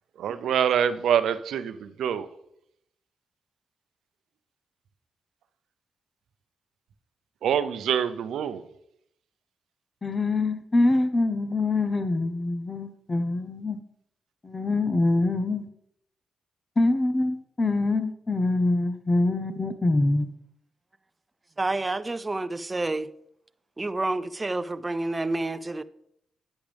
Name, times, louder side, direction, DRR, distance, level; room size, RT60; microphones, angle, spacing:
voice 1, 0.2-2.3 7.4-8.6, right 8 dB, 85° right, 0.6 m, -25 dB
voice 2, 10.0-13.8 14.4-15.6 16.8-20.3, left 2 dB, 30° left, 0.9 m, -24 dB
voice 3, 21.6-23.1 23.8-25.8, right 2 dB, 25° right, 0.5 m, -29 dB
10.5 x 9.3 x 3.4 m
cardioid pair, 80°, 0 cm